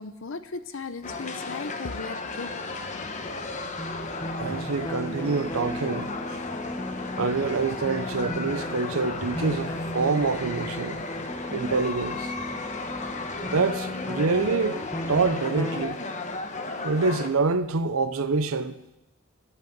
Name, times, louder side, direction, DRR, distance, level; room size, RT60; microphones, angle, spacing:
voice 1, 0.0-2.5, left 4 dB, 60° left, 0.7 m, -36 dB
sound 1, 1.0-17.3, left 3 dB, 30° left, 1.0 m, -35 dB
sound 2, 2.4-15.2, equal, 5° right, 1.5 m, -48 dB
sound 3, 3.8-15.8, left 1 dB, 15° left, 0.6 m, -36 dB
voice 2, 4.4-6.1 7.2-11.0 11.5-12.3 13.1-13.2 13.5-14.8 15.1-16.0 16.8-18.8, right 4 dB, 70° right, 0.7 m, -26 dB
10.5 x 8.2 x 8.9 m
head